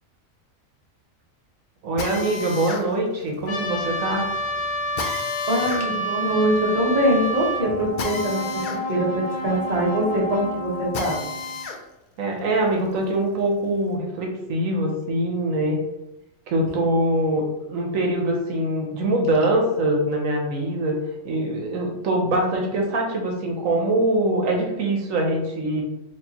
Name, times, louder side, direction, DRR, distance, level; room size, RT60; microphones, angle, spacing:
voice 1, 1.8-4.3 12.2-15.8 16.5-21.0 21.2-25.8, right 1 dB, 75° right, 1 dB, 1.1 m, -23 dB
Drill, 2.0-11.8 12.3-13.9, left 3 dB, 80° left, 0.4 m, -35 dB
Trumpet, 3.5-7.7, equal, 55° left, 1.0 m, -28 dB
voice 2, 5.1-8.6 8.9-11.2, equal, 35° right, -3 dB, 0.9 m, -23 dB
Brass instrument, 7.3-11.7, left 1 dB, 30° left, 0.9 m, -31 dB
4.4 x 2.8 x 2.8 m, 0.92 s
omnidirectional pair, 1.4 m